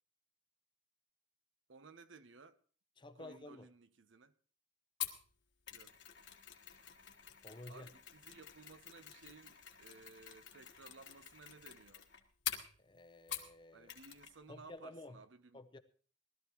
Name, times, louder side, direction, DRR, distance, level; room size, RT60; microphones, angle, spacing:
voice 1, 1.7-2.6 3.2-4.3 5.7-5.9 7.7-12.1 13.7-15.6, right 4 dB, 75° right, 0.8 m, -58 dB
voice 2, 3.0-3.7 7.4-7.9 12.8-13.9 14.5-15.2 15.5-15.8, left 2 dB, 25° left, 0.7 m, -52 dB
Mechanisms, 5.0-13.6 13.9-14.4 14.6-14.7, left 10 dB, 60° left, 1.5 m, -47 dB
19.5 x 13.0 x 3.1 m
head